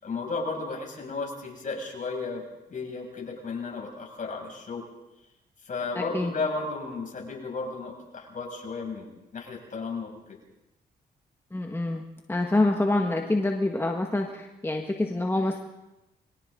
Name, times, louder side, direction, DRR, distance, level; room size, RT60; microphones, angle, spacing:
voice 1, 0.0-2.4 2.7-4.9 5.6-10.4, left 3 dB, 50° left, 0 dB, 6.9 m, -34 dB
voice 2, 11.5-12.0 12.3-15.6, left 2 dB, 15° left, 2 dB, 1.7 m, -26 dB
29.5 x 23.5 x 3.9 m, 0.95 s
cardioid pair, 80°, 17 cm